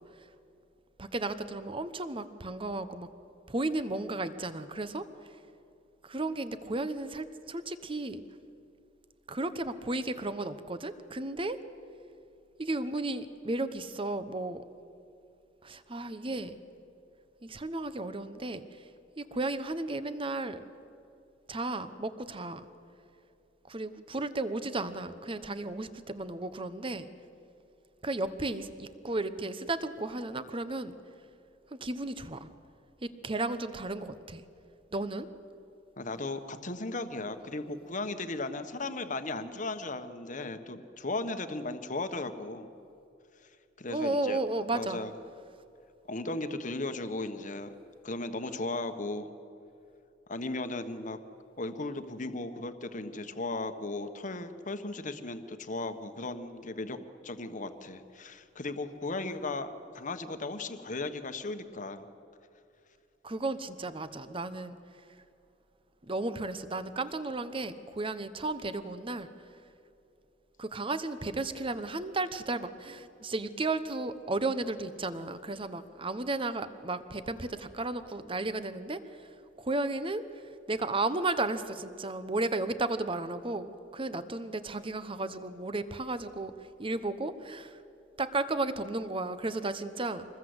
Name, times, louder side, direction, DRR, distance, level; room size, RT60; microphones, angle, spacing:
voice 1, 1.0-3.1 3.5-5.1 6.0-8.2 9.3-11.6 12.6-14.6 15.6-16.6 17.4-18.8 19.2-20.6 21.5-22.7 23.7-27.1 28.0-31.0 31.7-32.5 33.0-34.4 34.9-35.3 43.9-45.0 63.2-64.8 66.0-69.3 70.6-80.2 80.7-86.5 86.8-87.8 88.2-90.3, right 2 dB, 30° right, 12 dB, 1.0 m, -34 dB
voice 2, 36.0-42.7 43.4-43.5 43.8-44.4 44.7-45.1 46.1-47.7 48.0-49.3 50.3-51.2 51.6-57.0 57.2-59.7 59.9-62.1, left 2 dB, 45° left, 9 dB, 1.3 m, -36 dB
25.5 x 20.5 x 8.0 m, 2.6 s
head